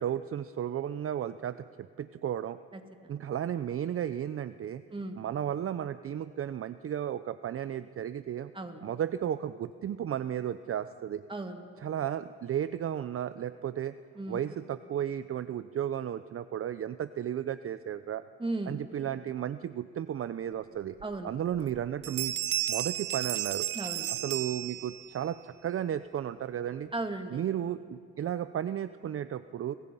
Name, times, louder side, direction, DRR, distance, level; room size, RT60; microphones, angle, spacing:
voice 1, 0.0-2.6 3.1-4.8 5.2-8.5 8.8-11.2 11.8-13.9 14.3-18.2 18.7-21.0 21.2-22.4 22.7-23.7 24.2-26.9 27.3-29.7, right 10 dB, 45° right, 13 dB, 0.6 m, -34 dB
voice 2, 2.7-3.3 4.9-5.2 8.5-8.8 11.3-11.6 14.1-14.4 18.4-18.8 21.0-21.3 23.7-24.1 26.9-27.4, right 2 dB, 15° right, 5 dB, 2.4 m, -36 dB
sound 1, 21.0-21.1 21.5-21.8 22.0-25.2, right 14 dB, 80° right, 1.1 m, -33 dB
28.5 x 24.0 x 5.5 m, 2.3 s
cardioid pair, 90°, 30 cm